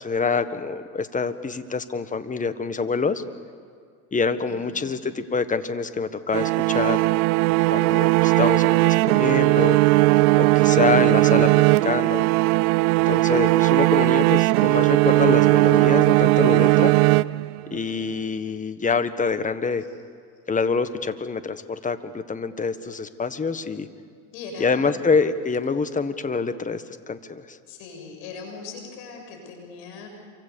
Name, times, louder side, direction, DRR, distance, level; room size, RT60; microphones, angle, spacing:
voice 1, 0.0-3.2 4.1-7.0 7.7-9.8 10.4-11.5 11.8-12.3 13.1-16.9 17.7-19.8 20.5-23.9 24.6-27.6, left 4 dB, 20° left, 11 dB, 1.5 m, -26 dB
voice 2, 4.5-5.0 19.8-19.9 24.3-25.1 27.7-30.1, left 4 dB, 70° left, 3 dB, 7.9 m, -40 dB
sound 1, 6.3-17.8, right 21 dB, 75° right, 0.6 m, -18 dB
27.5 x 24.5 x 7.1 m, 2.2 s
supercardioid pair, 105°, 43 cm